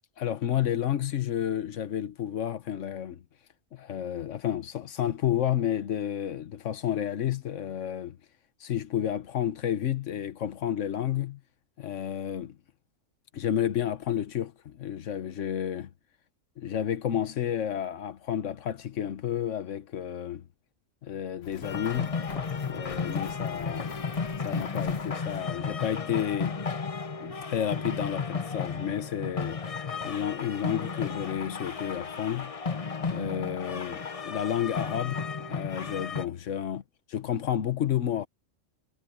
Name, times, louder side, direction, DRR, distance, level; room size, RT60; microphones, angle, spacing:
voice 1, 0.2-3.2 3.7-8.2 8.6-11.4 11.8-12.6 13.3-15.9 16.6-20.5 21.0-22.1 22.6-23.9 24.4-26.6 27.2-29.6 30.0-32.5 33.0-36.8 37.1-38.3, left 10 dB, 85° left, 1.3 m, -31 dB
sound 1, 21.4-26.1 26.3-26.4 29.4-29.5 29.9-30.0 30.3-31.0, left 6 dB, 60° left, 1.4 m, -49 dB
sound 2, 21.6-36.3, left 5 dB, 35° left, 0.8 m, -33 dB
omnidirectional pair, 1.2 m